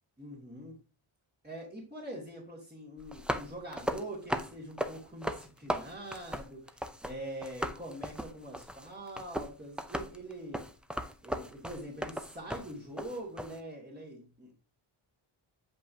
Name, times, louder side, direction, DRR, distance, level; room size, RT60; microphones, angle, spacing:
voice 1, 0.2-0.8 1.4-10.6 11.2-14.5, right 1 dB, 20° right, -7 dB, 2.5 m, -44 dB
sound 1, 3.0-7.1 7.4-13.6, equal, ahead, 0.5 m, -37 dB
7.8 x 5.3 x 2.8 m, 0.35 s
wide cardioid pair, 135°, 49 cm